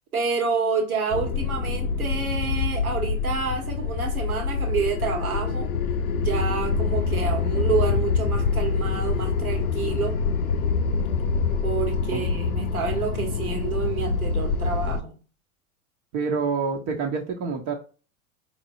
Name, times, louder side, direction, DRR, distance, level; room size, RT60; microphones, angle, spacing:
voice 1, 0.1-5.7 6.1-10.2 11.6-15.2, right 5 dB, 85° right, 2 dB, 1.4 m, -28 dB
sound 1, 1.1-15.0, left 5 dB, 80° left, 0.6 m, -25 dB
voice 2, 16.1-17.7, right 5 dB, 40° right, 2 dB, 0.9 m, -27 dB
4.5 x 3.1 x 2.6 m, 0.35 s
hypercardioid pair, 95°, 42 cm